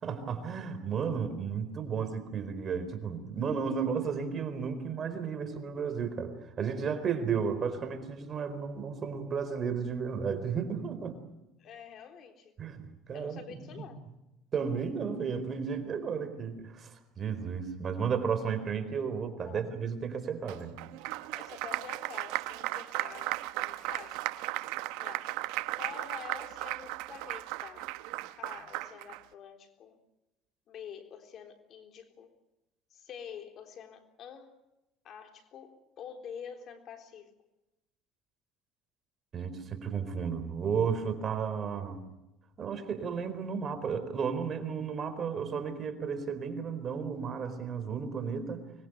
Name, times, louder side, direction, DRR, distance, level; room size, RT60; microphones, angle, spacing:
voice 1, 0.0-11.2 12.6-12.8 13.1-13.9 14.5-20.8 39.3-42.0 42.6-48.6, right 6 dB, 40° right, 10 dB, 4.3 m, -33 dB
voice 2, 11.6-12.5 13.1-14.0 19.5-19.6 21.3-24.2 25.0-25.4 25.8-27.9 28.4-30.0 30.7-32.3 32.9-34.6 35.0-37.3, left 8 dB, 50° left, 5 dB, 3.7 m, -47 dB
Applause, 20.5-29.2, right 18 dB, 80° right, 1.0 m, -36 dB
25.0 x 21.0 x 7.9 m, 0.96 s
supercardioid pair, 105°, 0 cm